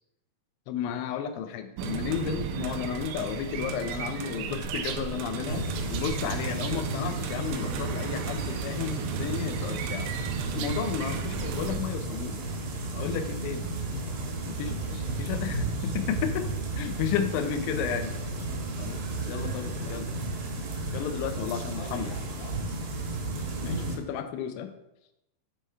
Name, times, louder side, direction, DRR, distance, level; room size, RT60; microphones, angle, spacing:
voice 1, 0.7-10.1 10.5-12.4 12.9-13.8 14.5-14.8 15.2-16.5 16.8-18.1 18.8-19.0 19.3-20.0 20.9-22.1 23.6-24.7, left 8 dB, 85° left, 8 dB, 2.9 m, -33 dB
sound 1, 1.8-11.8, right 7 dB, 85° right, 2.5 m, -35 dB
sound 2, 5.5-24.0, right 2 dB, 70° right, 2.4 m, -33 dB
voice 2, 14.8-15.3 15.6-15.9 16.8-17.0 18.0-20.3 21.3-22.9, left 3 dB, 60° left, -2 dB, 2.1 m, -49 dB
7.2 x 3.5 x 4.4 m, 0.87 s
omnidirectional pair, 5.2 m